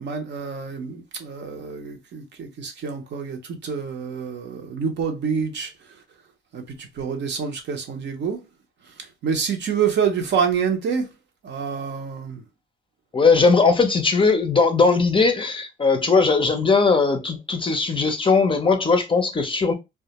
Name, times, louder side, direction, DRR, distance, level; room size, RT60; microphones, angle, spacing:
voice 1, 0.0-5.7 6.5-8.4 9.2-11.1 11.4-12.4, right 6 dB, 60° right, 0.7 m, -27 dB
voice 2, 13.1-19.7, left 4 dB, 25° left, 0.5 m, -19 dB
2.2 x 2.1 x 2.8 m
cardioid pair, 90°, 20 cm